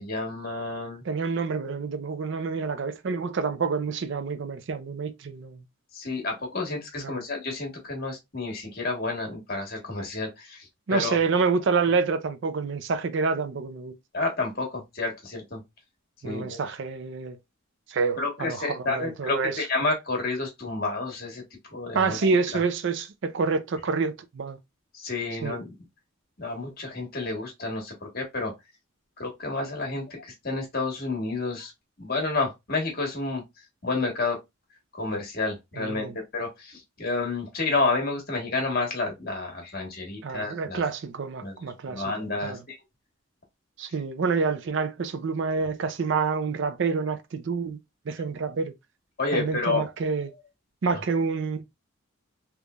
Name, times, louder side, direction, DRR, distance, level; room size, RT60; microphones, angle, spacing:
voice 1, 0.0-1.0 5.9-11.2 14.1-15.6 16.2-16.6 18.2-21.4 21.7-22.2 22.5-22.6 24.9-25.7 26.4-28.5 29.2-31.7 32.0-33.4 33.8-34.4 34.9-40.8 41.4-41.6 41.9-42.8 49.2-49.8, left 3 dB, 50° left, 1.4 m, -30 dB
voice 2, 1.0-5.6 7.0-7.2 10.9-13.9 16.2-17.4 17.9-19.7 21.9-24.6 25.4-25.6 35.8-36.2 40.2-42.0 42.4-42.6 43.8-47.8 48.1-48.7 49.3-50.3 50.8-51.6, right 4 dB, 60° right, 0.4 m, -27 dB
3.6 x 2.9 x 2.3 m
head